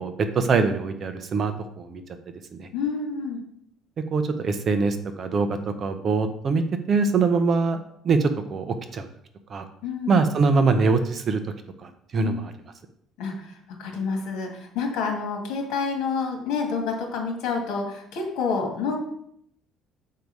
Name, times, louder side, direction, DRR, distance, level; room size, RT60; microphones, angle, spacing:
voice 1, 0.0-2.0 2.5-2.7 4.1-5.5 5.8-7.8 8.0-9.1 9.5-9.6 10.1-11.4 11.8-12.5, right 4 dB, 30° right, 8 dB, 0.6 m, -23 dB
voice 2, 2.7-3.4 9.8-10.2 12.2-12.4 13.2-13.5 13.8-18.9, left 5 dB, 70° left, 1 dB, 2.2 m, -28 dB
6.6 x 4.6 x 5.4 m, 0.69 s
cardioid pair, 180°, 0 cm